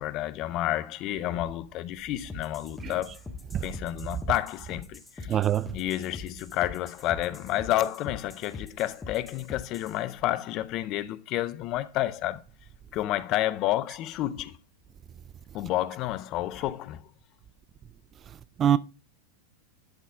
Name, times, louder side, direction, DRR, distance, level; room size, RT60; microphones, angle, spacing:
voice 1, 0.0-3.2 3.6-5.4 5.7-12.4 12.9-14.6 15.5-17.0, left 14 dB, 45° left, 0.6 m, -30 dB
sound 1, 2.3-10.0, left 4 dB, 15° left, 1.3 m, -43 dB
voice 2, 5.3-5.7 18.6-18.8, right 10 dB, 30° right, 0.3 m, -23 dB
11.5 x 4.2 x 3.4 m
hypercardioid pair, 105°, 0 cm